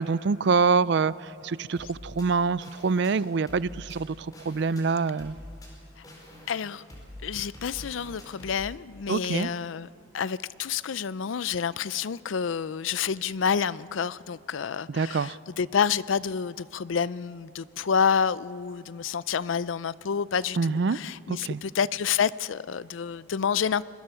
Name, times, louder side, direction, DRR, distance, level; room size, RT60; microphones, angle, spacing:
voice 1, 0.0-5.4 9.1-9.5 14.9-15.4 20.6-21.0 21.3-21.6, right 4 dB, 65° right, 18 dB, 0.5 m, -25 dB
sound 1, 1.8-8.6, left 1 dB, 20° left, 5.0 m, -46 dB
voice 2, 6.5-6.8 7.2-9.9 10.1-23.8, left 7 dB, 85° left, 18 dB, 0.5 m, -28 dB
25.5 x 21.0 x 5.7 m, 2.6 s
head